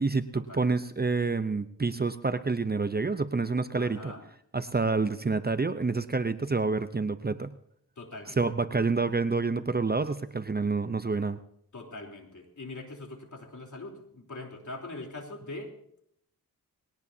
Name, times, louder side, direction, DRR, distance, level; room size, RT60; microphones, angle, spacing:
voice 1, 0.0-4.1 4.5-7.5 8.4-11.4, right 4 dB, 25° right, 12 dB, 0.7 m, -28 dB
voice 2, 3.8-4.2 8.0-8.4 11.7-15.7, left 2 dB, 55° left, 2 dB, 3.6 m, -42 dB
20.5 x 18.0 x 2.8 m, 0.69 s
cardioid pair, 55°, 36 cm